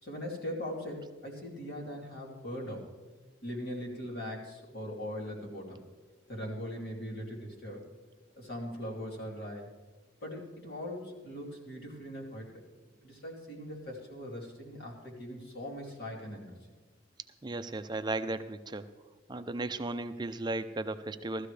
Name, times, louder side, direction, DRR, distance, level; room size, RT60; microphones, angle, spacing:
voice 1, 0.0-2.9 3.4-5.8 6.3-7.9 8.4-9.7 10.2-12.6 13.0-16.6, equal, 55° left, -3 dB, 2.8 m, -40 dB
voice 2, 17.4-18.8 19.3-21.5, right 2 dB, 20° right, 10 dB, 0.5 m, -35 dB
17.0 x 13.0 x 3.3 m, 1.3 s
head